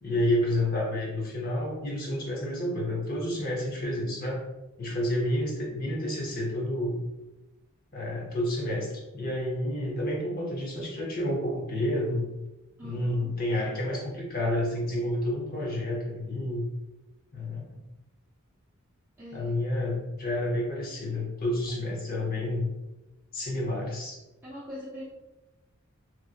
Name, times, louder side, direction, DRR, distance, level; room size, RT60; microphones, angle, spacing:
voice 1, 0.0-4.4 4.8-7.0 7.9-12.3 12.8-16.7 17.3-17.8 19.3-22.7 23.3-24.2, left 1 dB, 45° left, -2 dB, 0.8 m, -30 dB
voice 2, 12.8-13.3 19.2-19.6 24.4-25.1, left 1 dB, 10° right, -10 dB, 0.6 m, -42 dB
2.9 x 2.6 x 2.4 m, 1.0 s
head